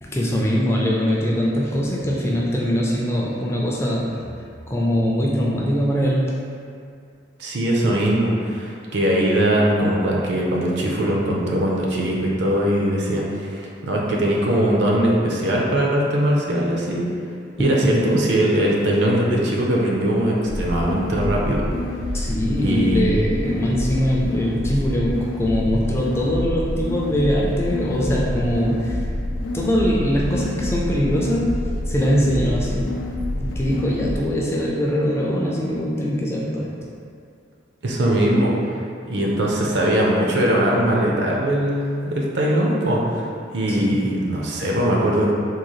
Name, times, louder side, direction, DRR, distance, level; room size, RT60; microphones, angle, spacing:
voice 1, 0.0-4.2 4.7-6.3 17.6-18.0 22.1-29.0 29.5-33.0 33.4-36.7 43.7-44.0, equal, 15° left, -4 dB, 0.4 m, -22 dB
voice 2, 7.4-13.5 13.8-17.1 17.6-21.7 22.6-23.0 37.8-38.5 39.1-43.0 43.5-45.3, right 1 dB, 60° right, -3 dB, 0.5 m, -20 dB
sound 1, 20.5-34.2, left 1 dB, 80° left, 0.4 m, -27 dB
3.7 x 2.3 x 3.1 m, 2.4 s
head